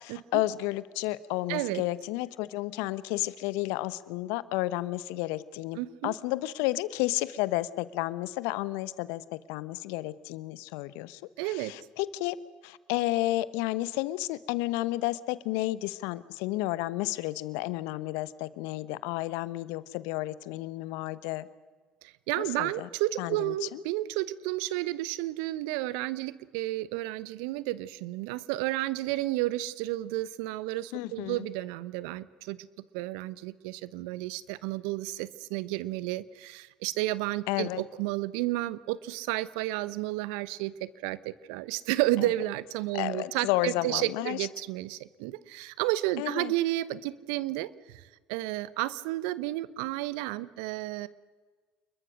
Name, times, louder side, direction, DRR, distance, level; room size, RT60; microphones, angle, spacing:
voice 1, 0.0-12.4 12.6-21.5 22.4-22.9 23.2-23.8 30.9-31.4 37.5-37.8 42.2-42.3 42.9-44.5 46.2-46.5, left 17 dB, 70° left, 17 dB, 1.0 m, -32 dB
voice 2, 1.5-1.8 5.8-6.1 11.4-11.7 22.0-32.7 32.9-51.1, right 17 dB, 70° right, 18 dB, 0.9 m, -32 dB
28.5 x 22.0 x 6.4 m, 1.4 s
hypercardioid pair, 60°, 5 cm